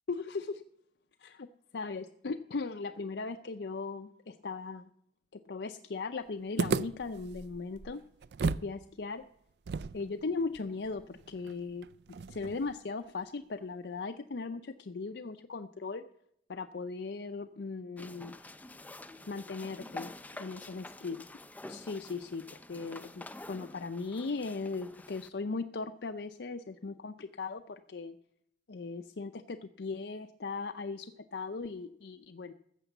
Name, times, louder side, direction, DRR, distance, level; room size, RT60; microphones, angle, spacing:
voice 1, 0.1-0.6 1.2-1.5 1.7-4.8 5.3-8.0 8.4-9.2 9.9-16.0 16.5-18.5 19.3-21.2 21.7-28.2 28.7-32.5, left 4 dB, 70° left, 8 dB, 0.5 m, -38 dB
sound 1, 6.6-8.7 9.0-9.1 9.7-12.8, right 4 dB, 65° right, 0.4 m, -36 dB
sound 2, 18.0-25.3, left 2 dB, 10° left, 0.5 m, -48 dB
14.0 x 6.8 x 8.1 m, 0.72 s
head